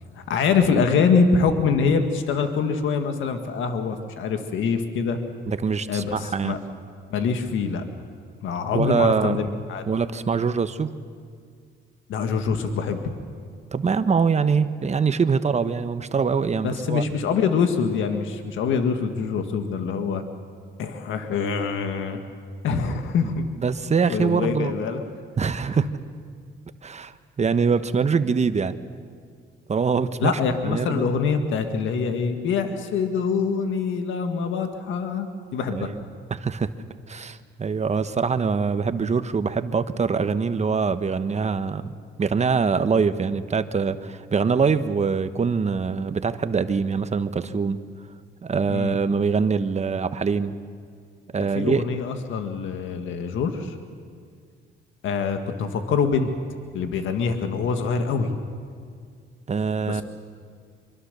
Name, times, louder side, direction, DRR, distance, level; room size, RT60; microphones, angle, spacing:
voice 1, 0.2-5.2 5.9-6.6 7.1-7.8 8.4-9.8 12.1-13.1 16.6-20.2 20.8-22.2 22.6-23.5 24.1-25.0 25.8-25.9 30.2-35.9 48.7-49.0 51.4-53.8 55.0-56.3 56.7-58.3 59.9-60.0, left 5 dB, 80° left, 6 dB, 1.8 m, -24 dB
voice 2, 5.5-6.6 8.7-9.4 9.9-10.9 13.7-17.0 22.7-22.8 23.6-24.7 25.4-25.9 26.8-28.8 29.7-30.3 30.6-31.1 35.7-36.0 36.3-36.7 37.1-41.9 42.2-47.8 48.4-50.5 51.3-51.8 59.5-60.0, right 5 dB, 35° right, 11 dB, 1.0 m, -23 dB
24.5 x 23.5 x 6.8 m, 2.1 s
cardioid pair, 90°, 20 cm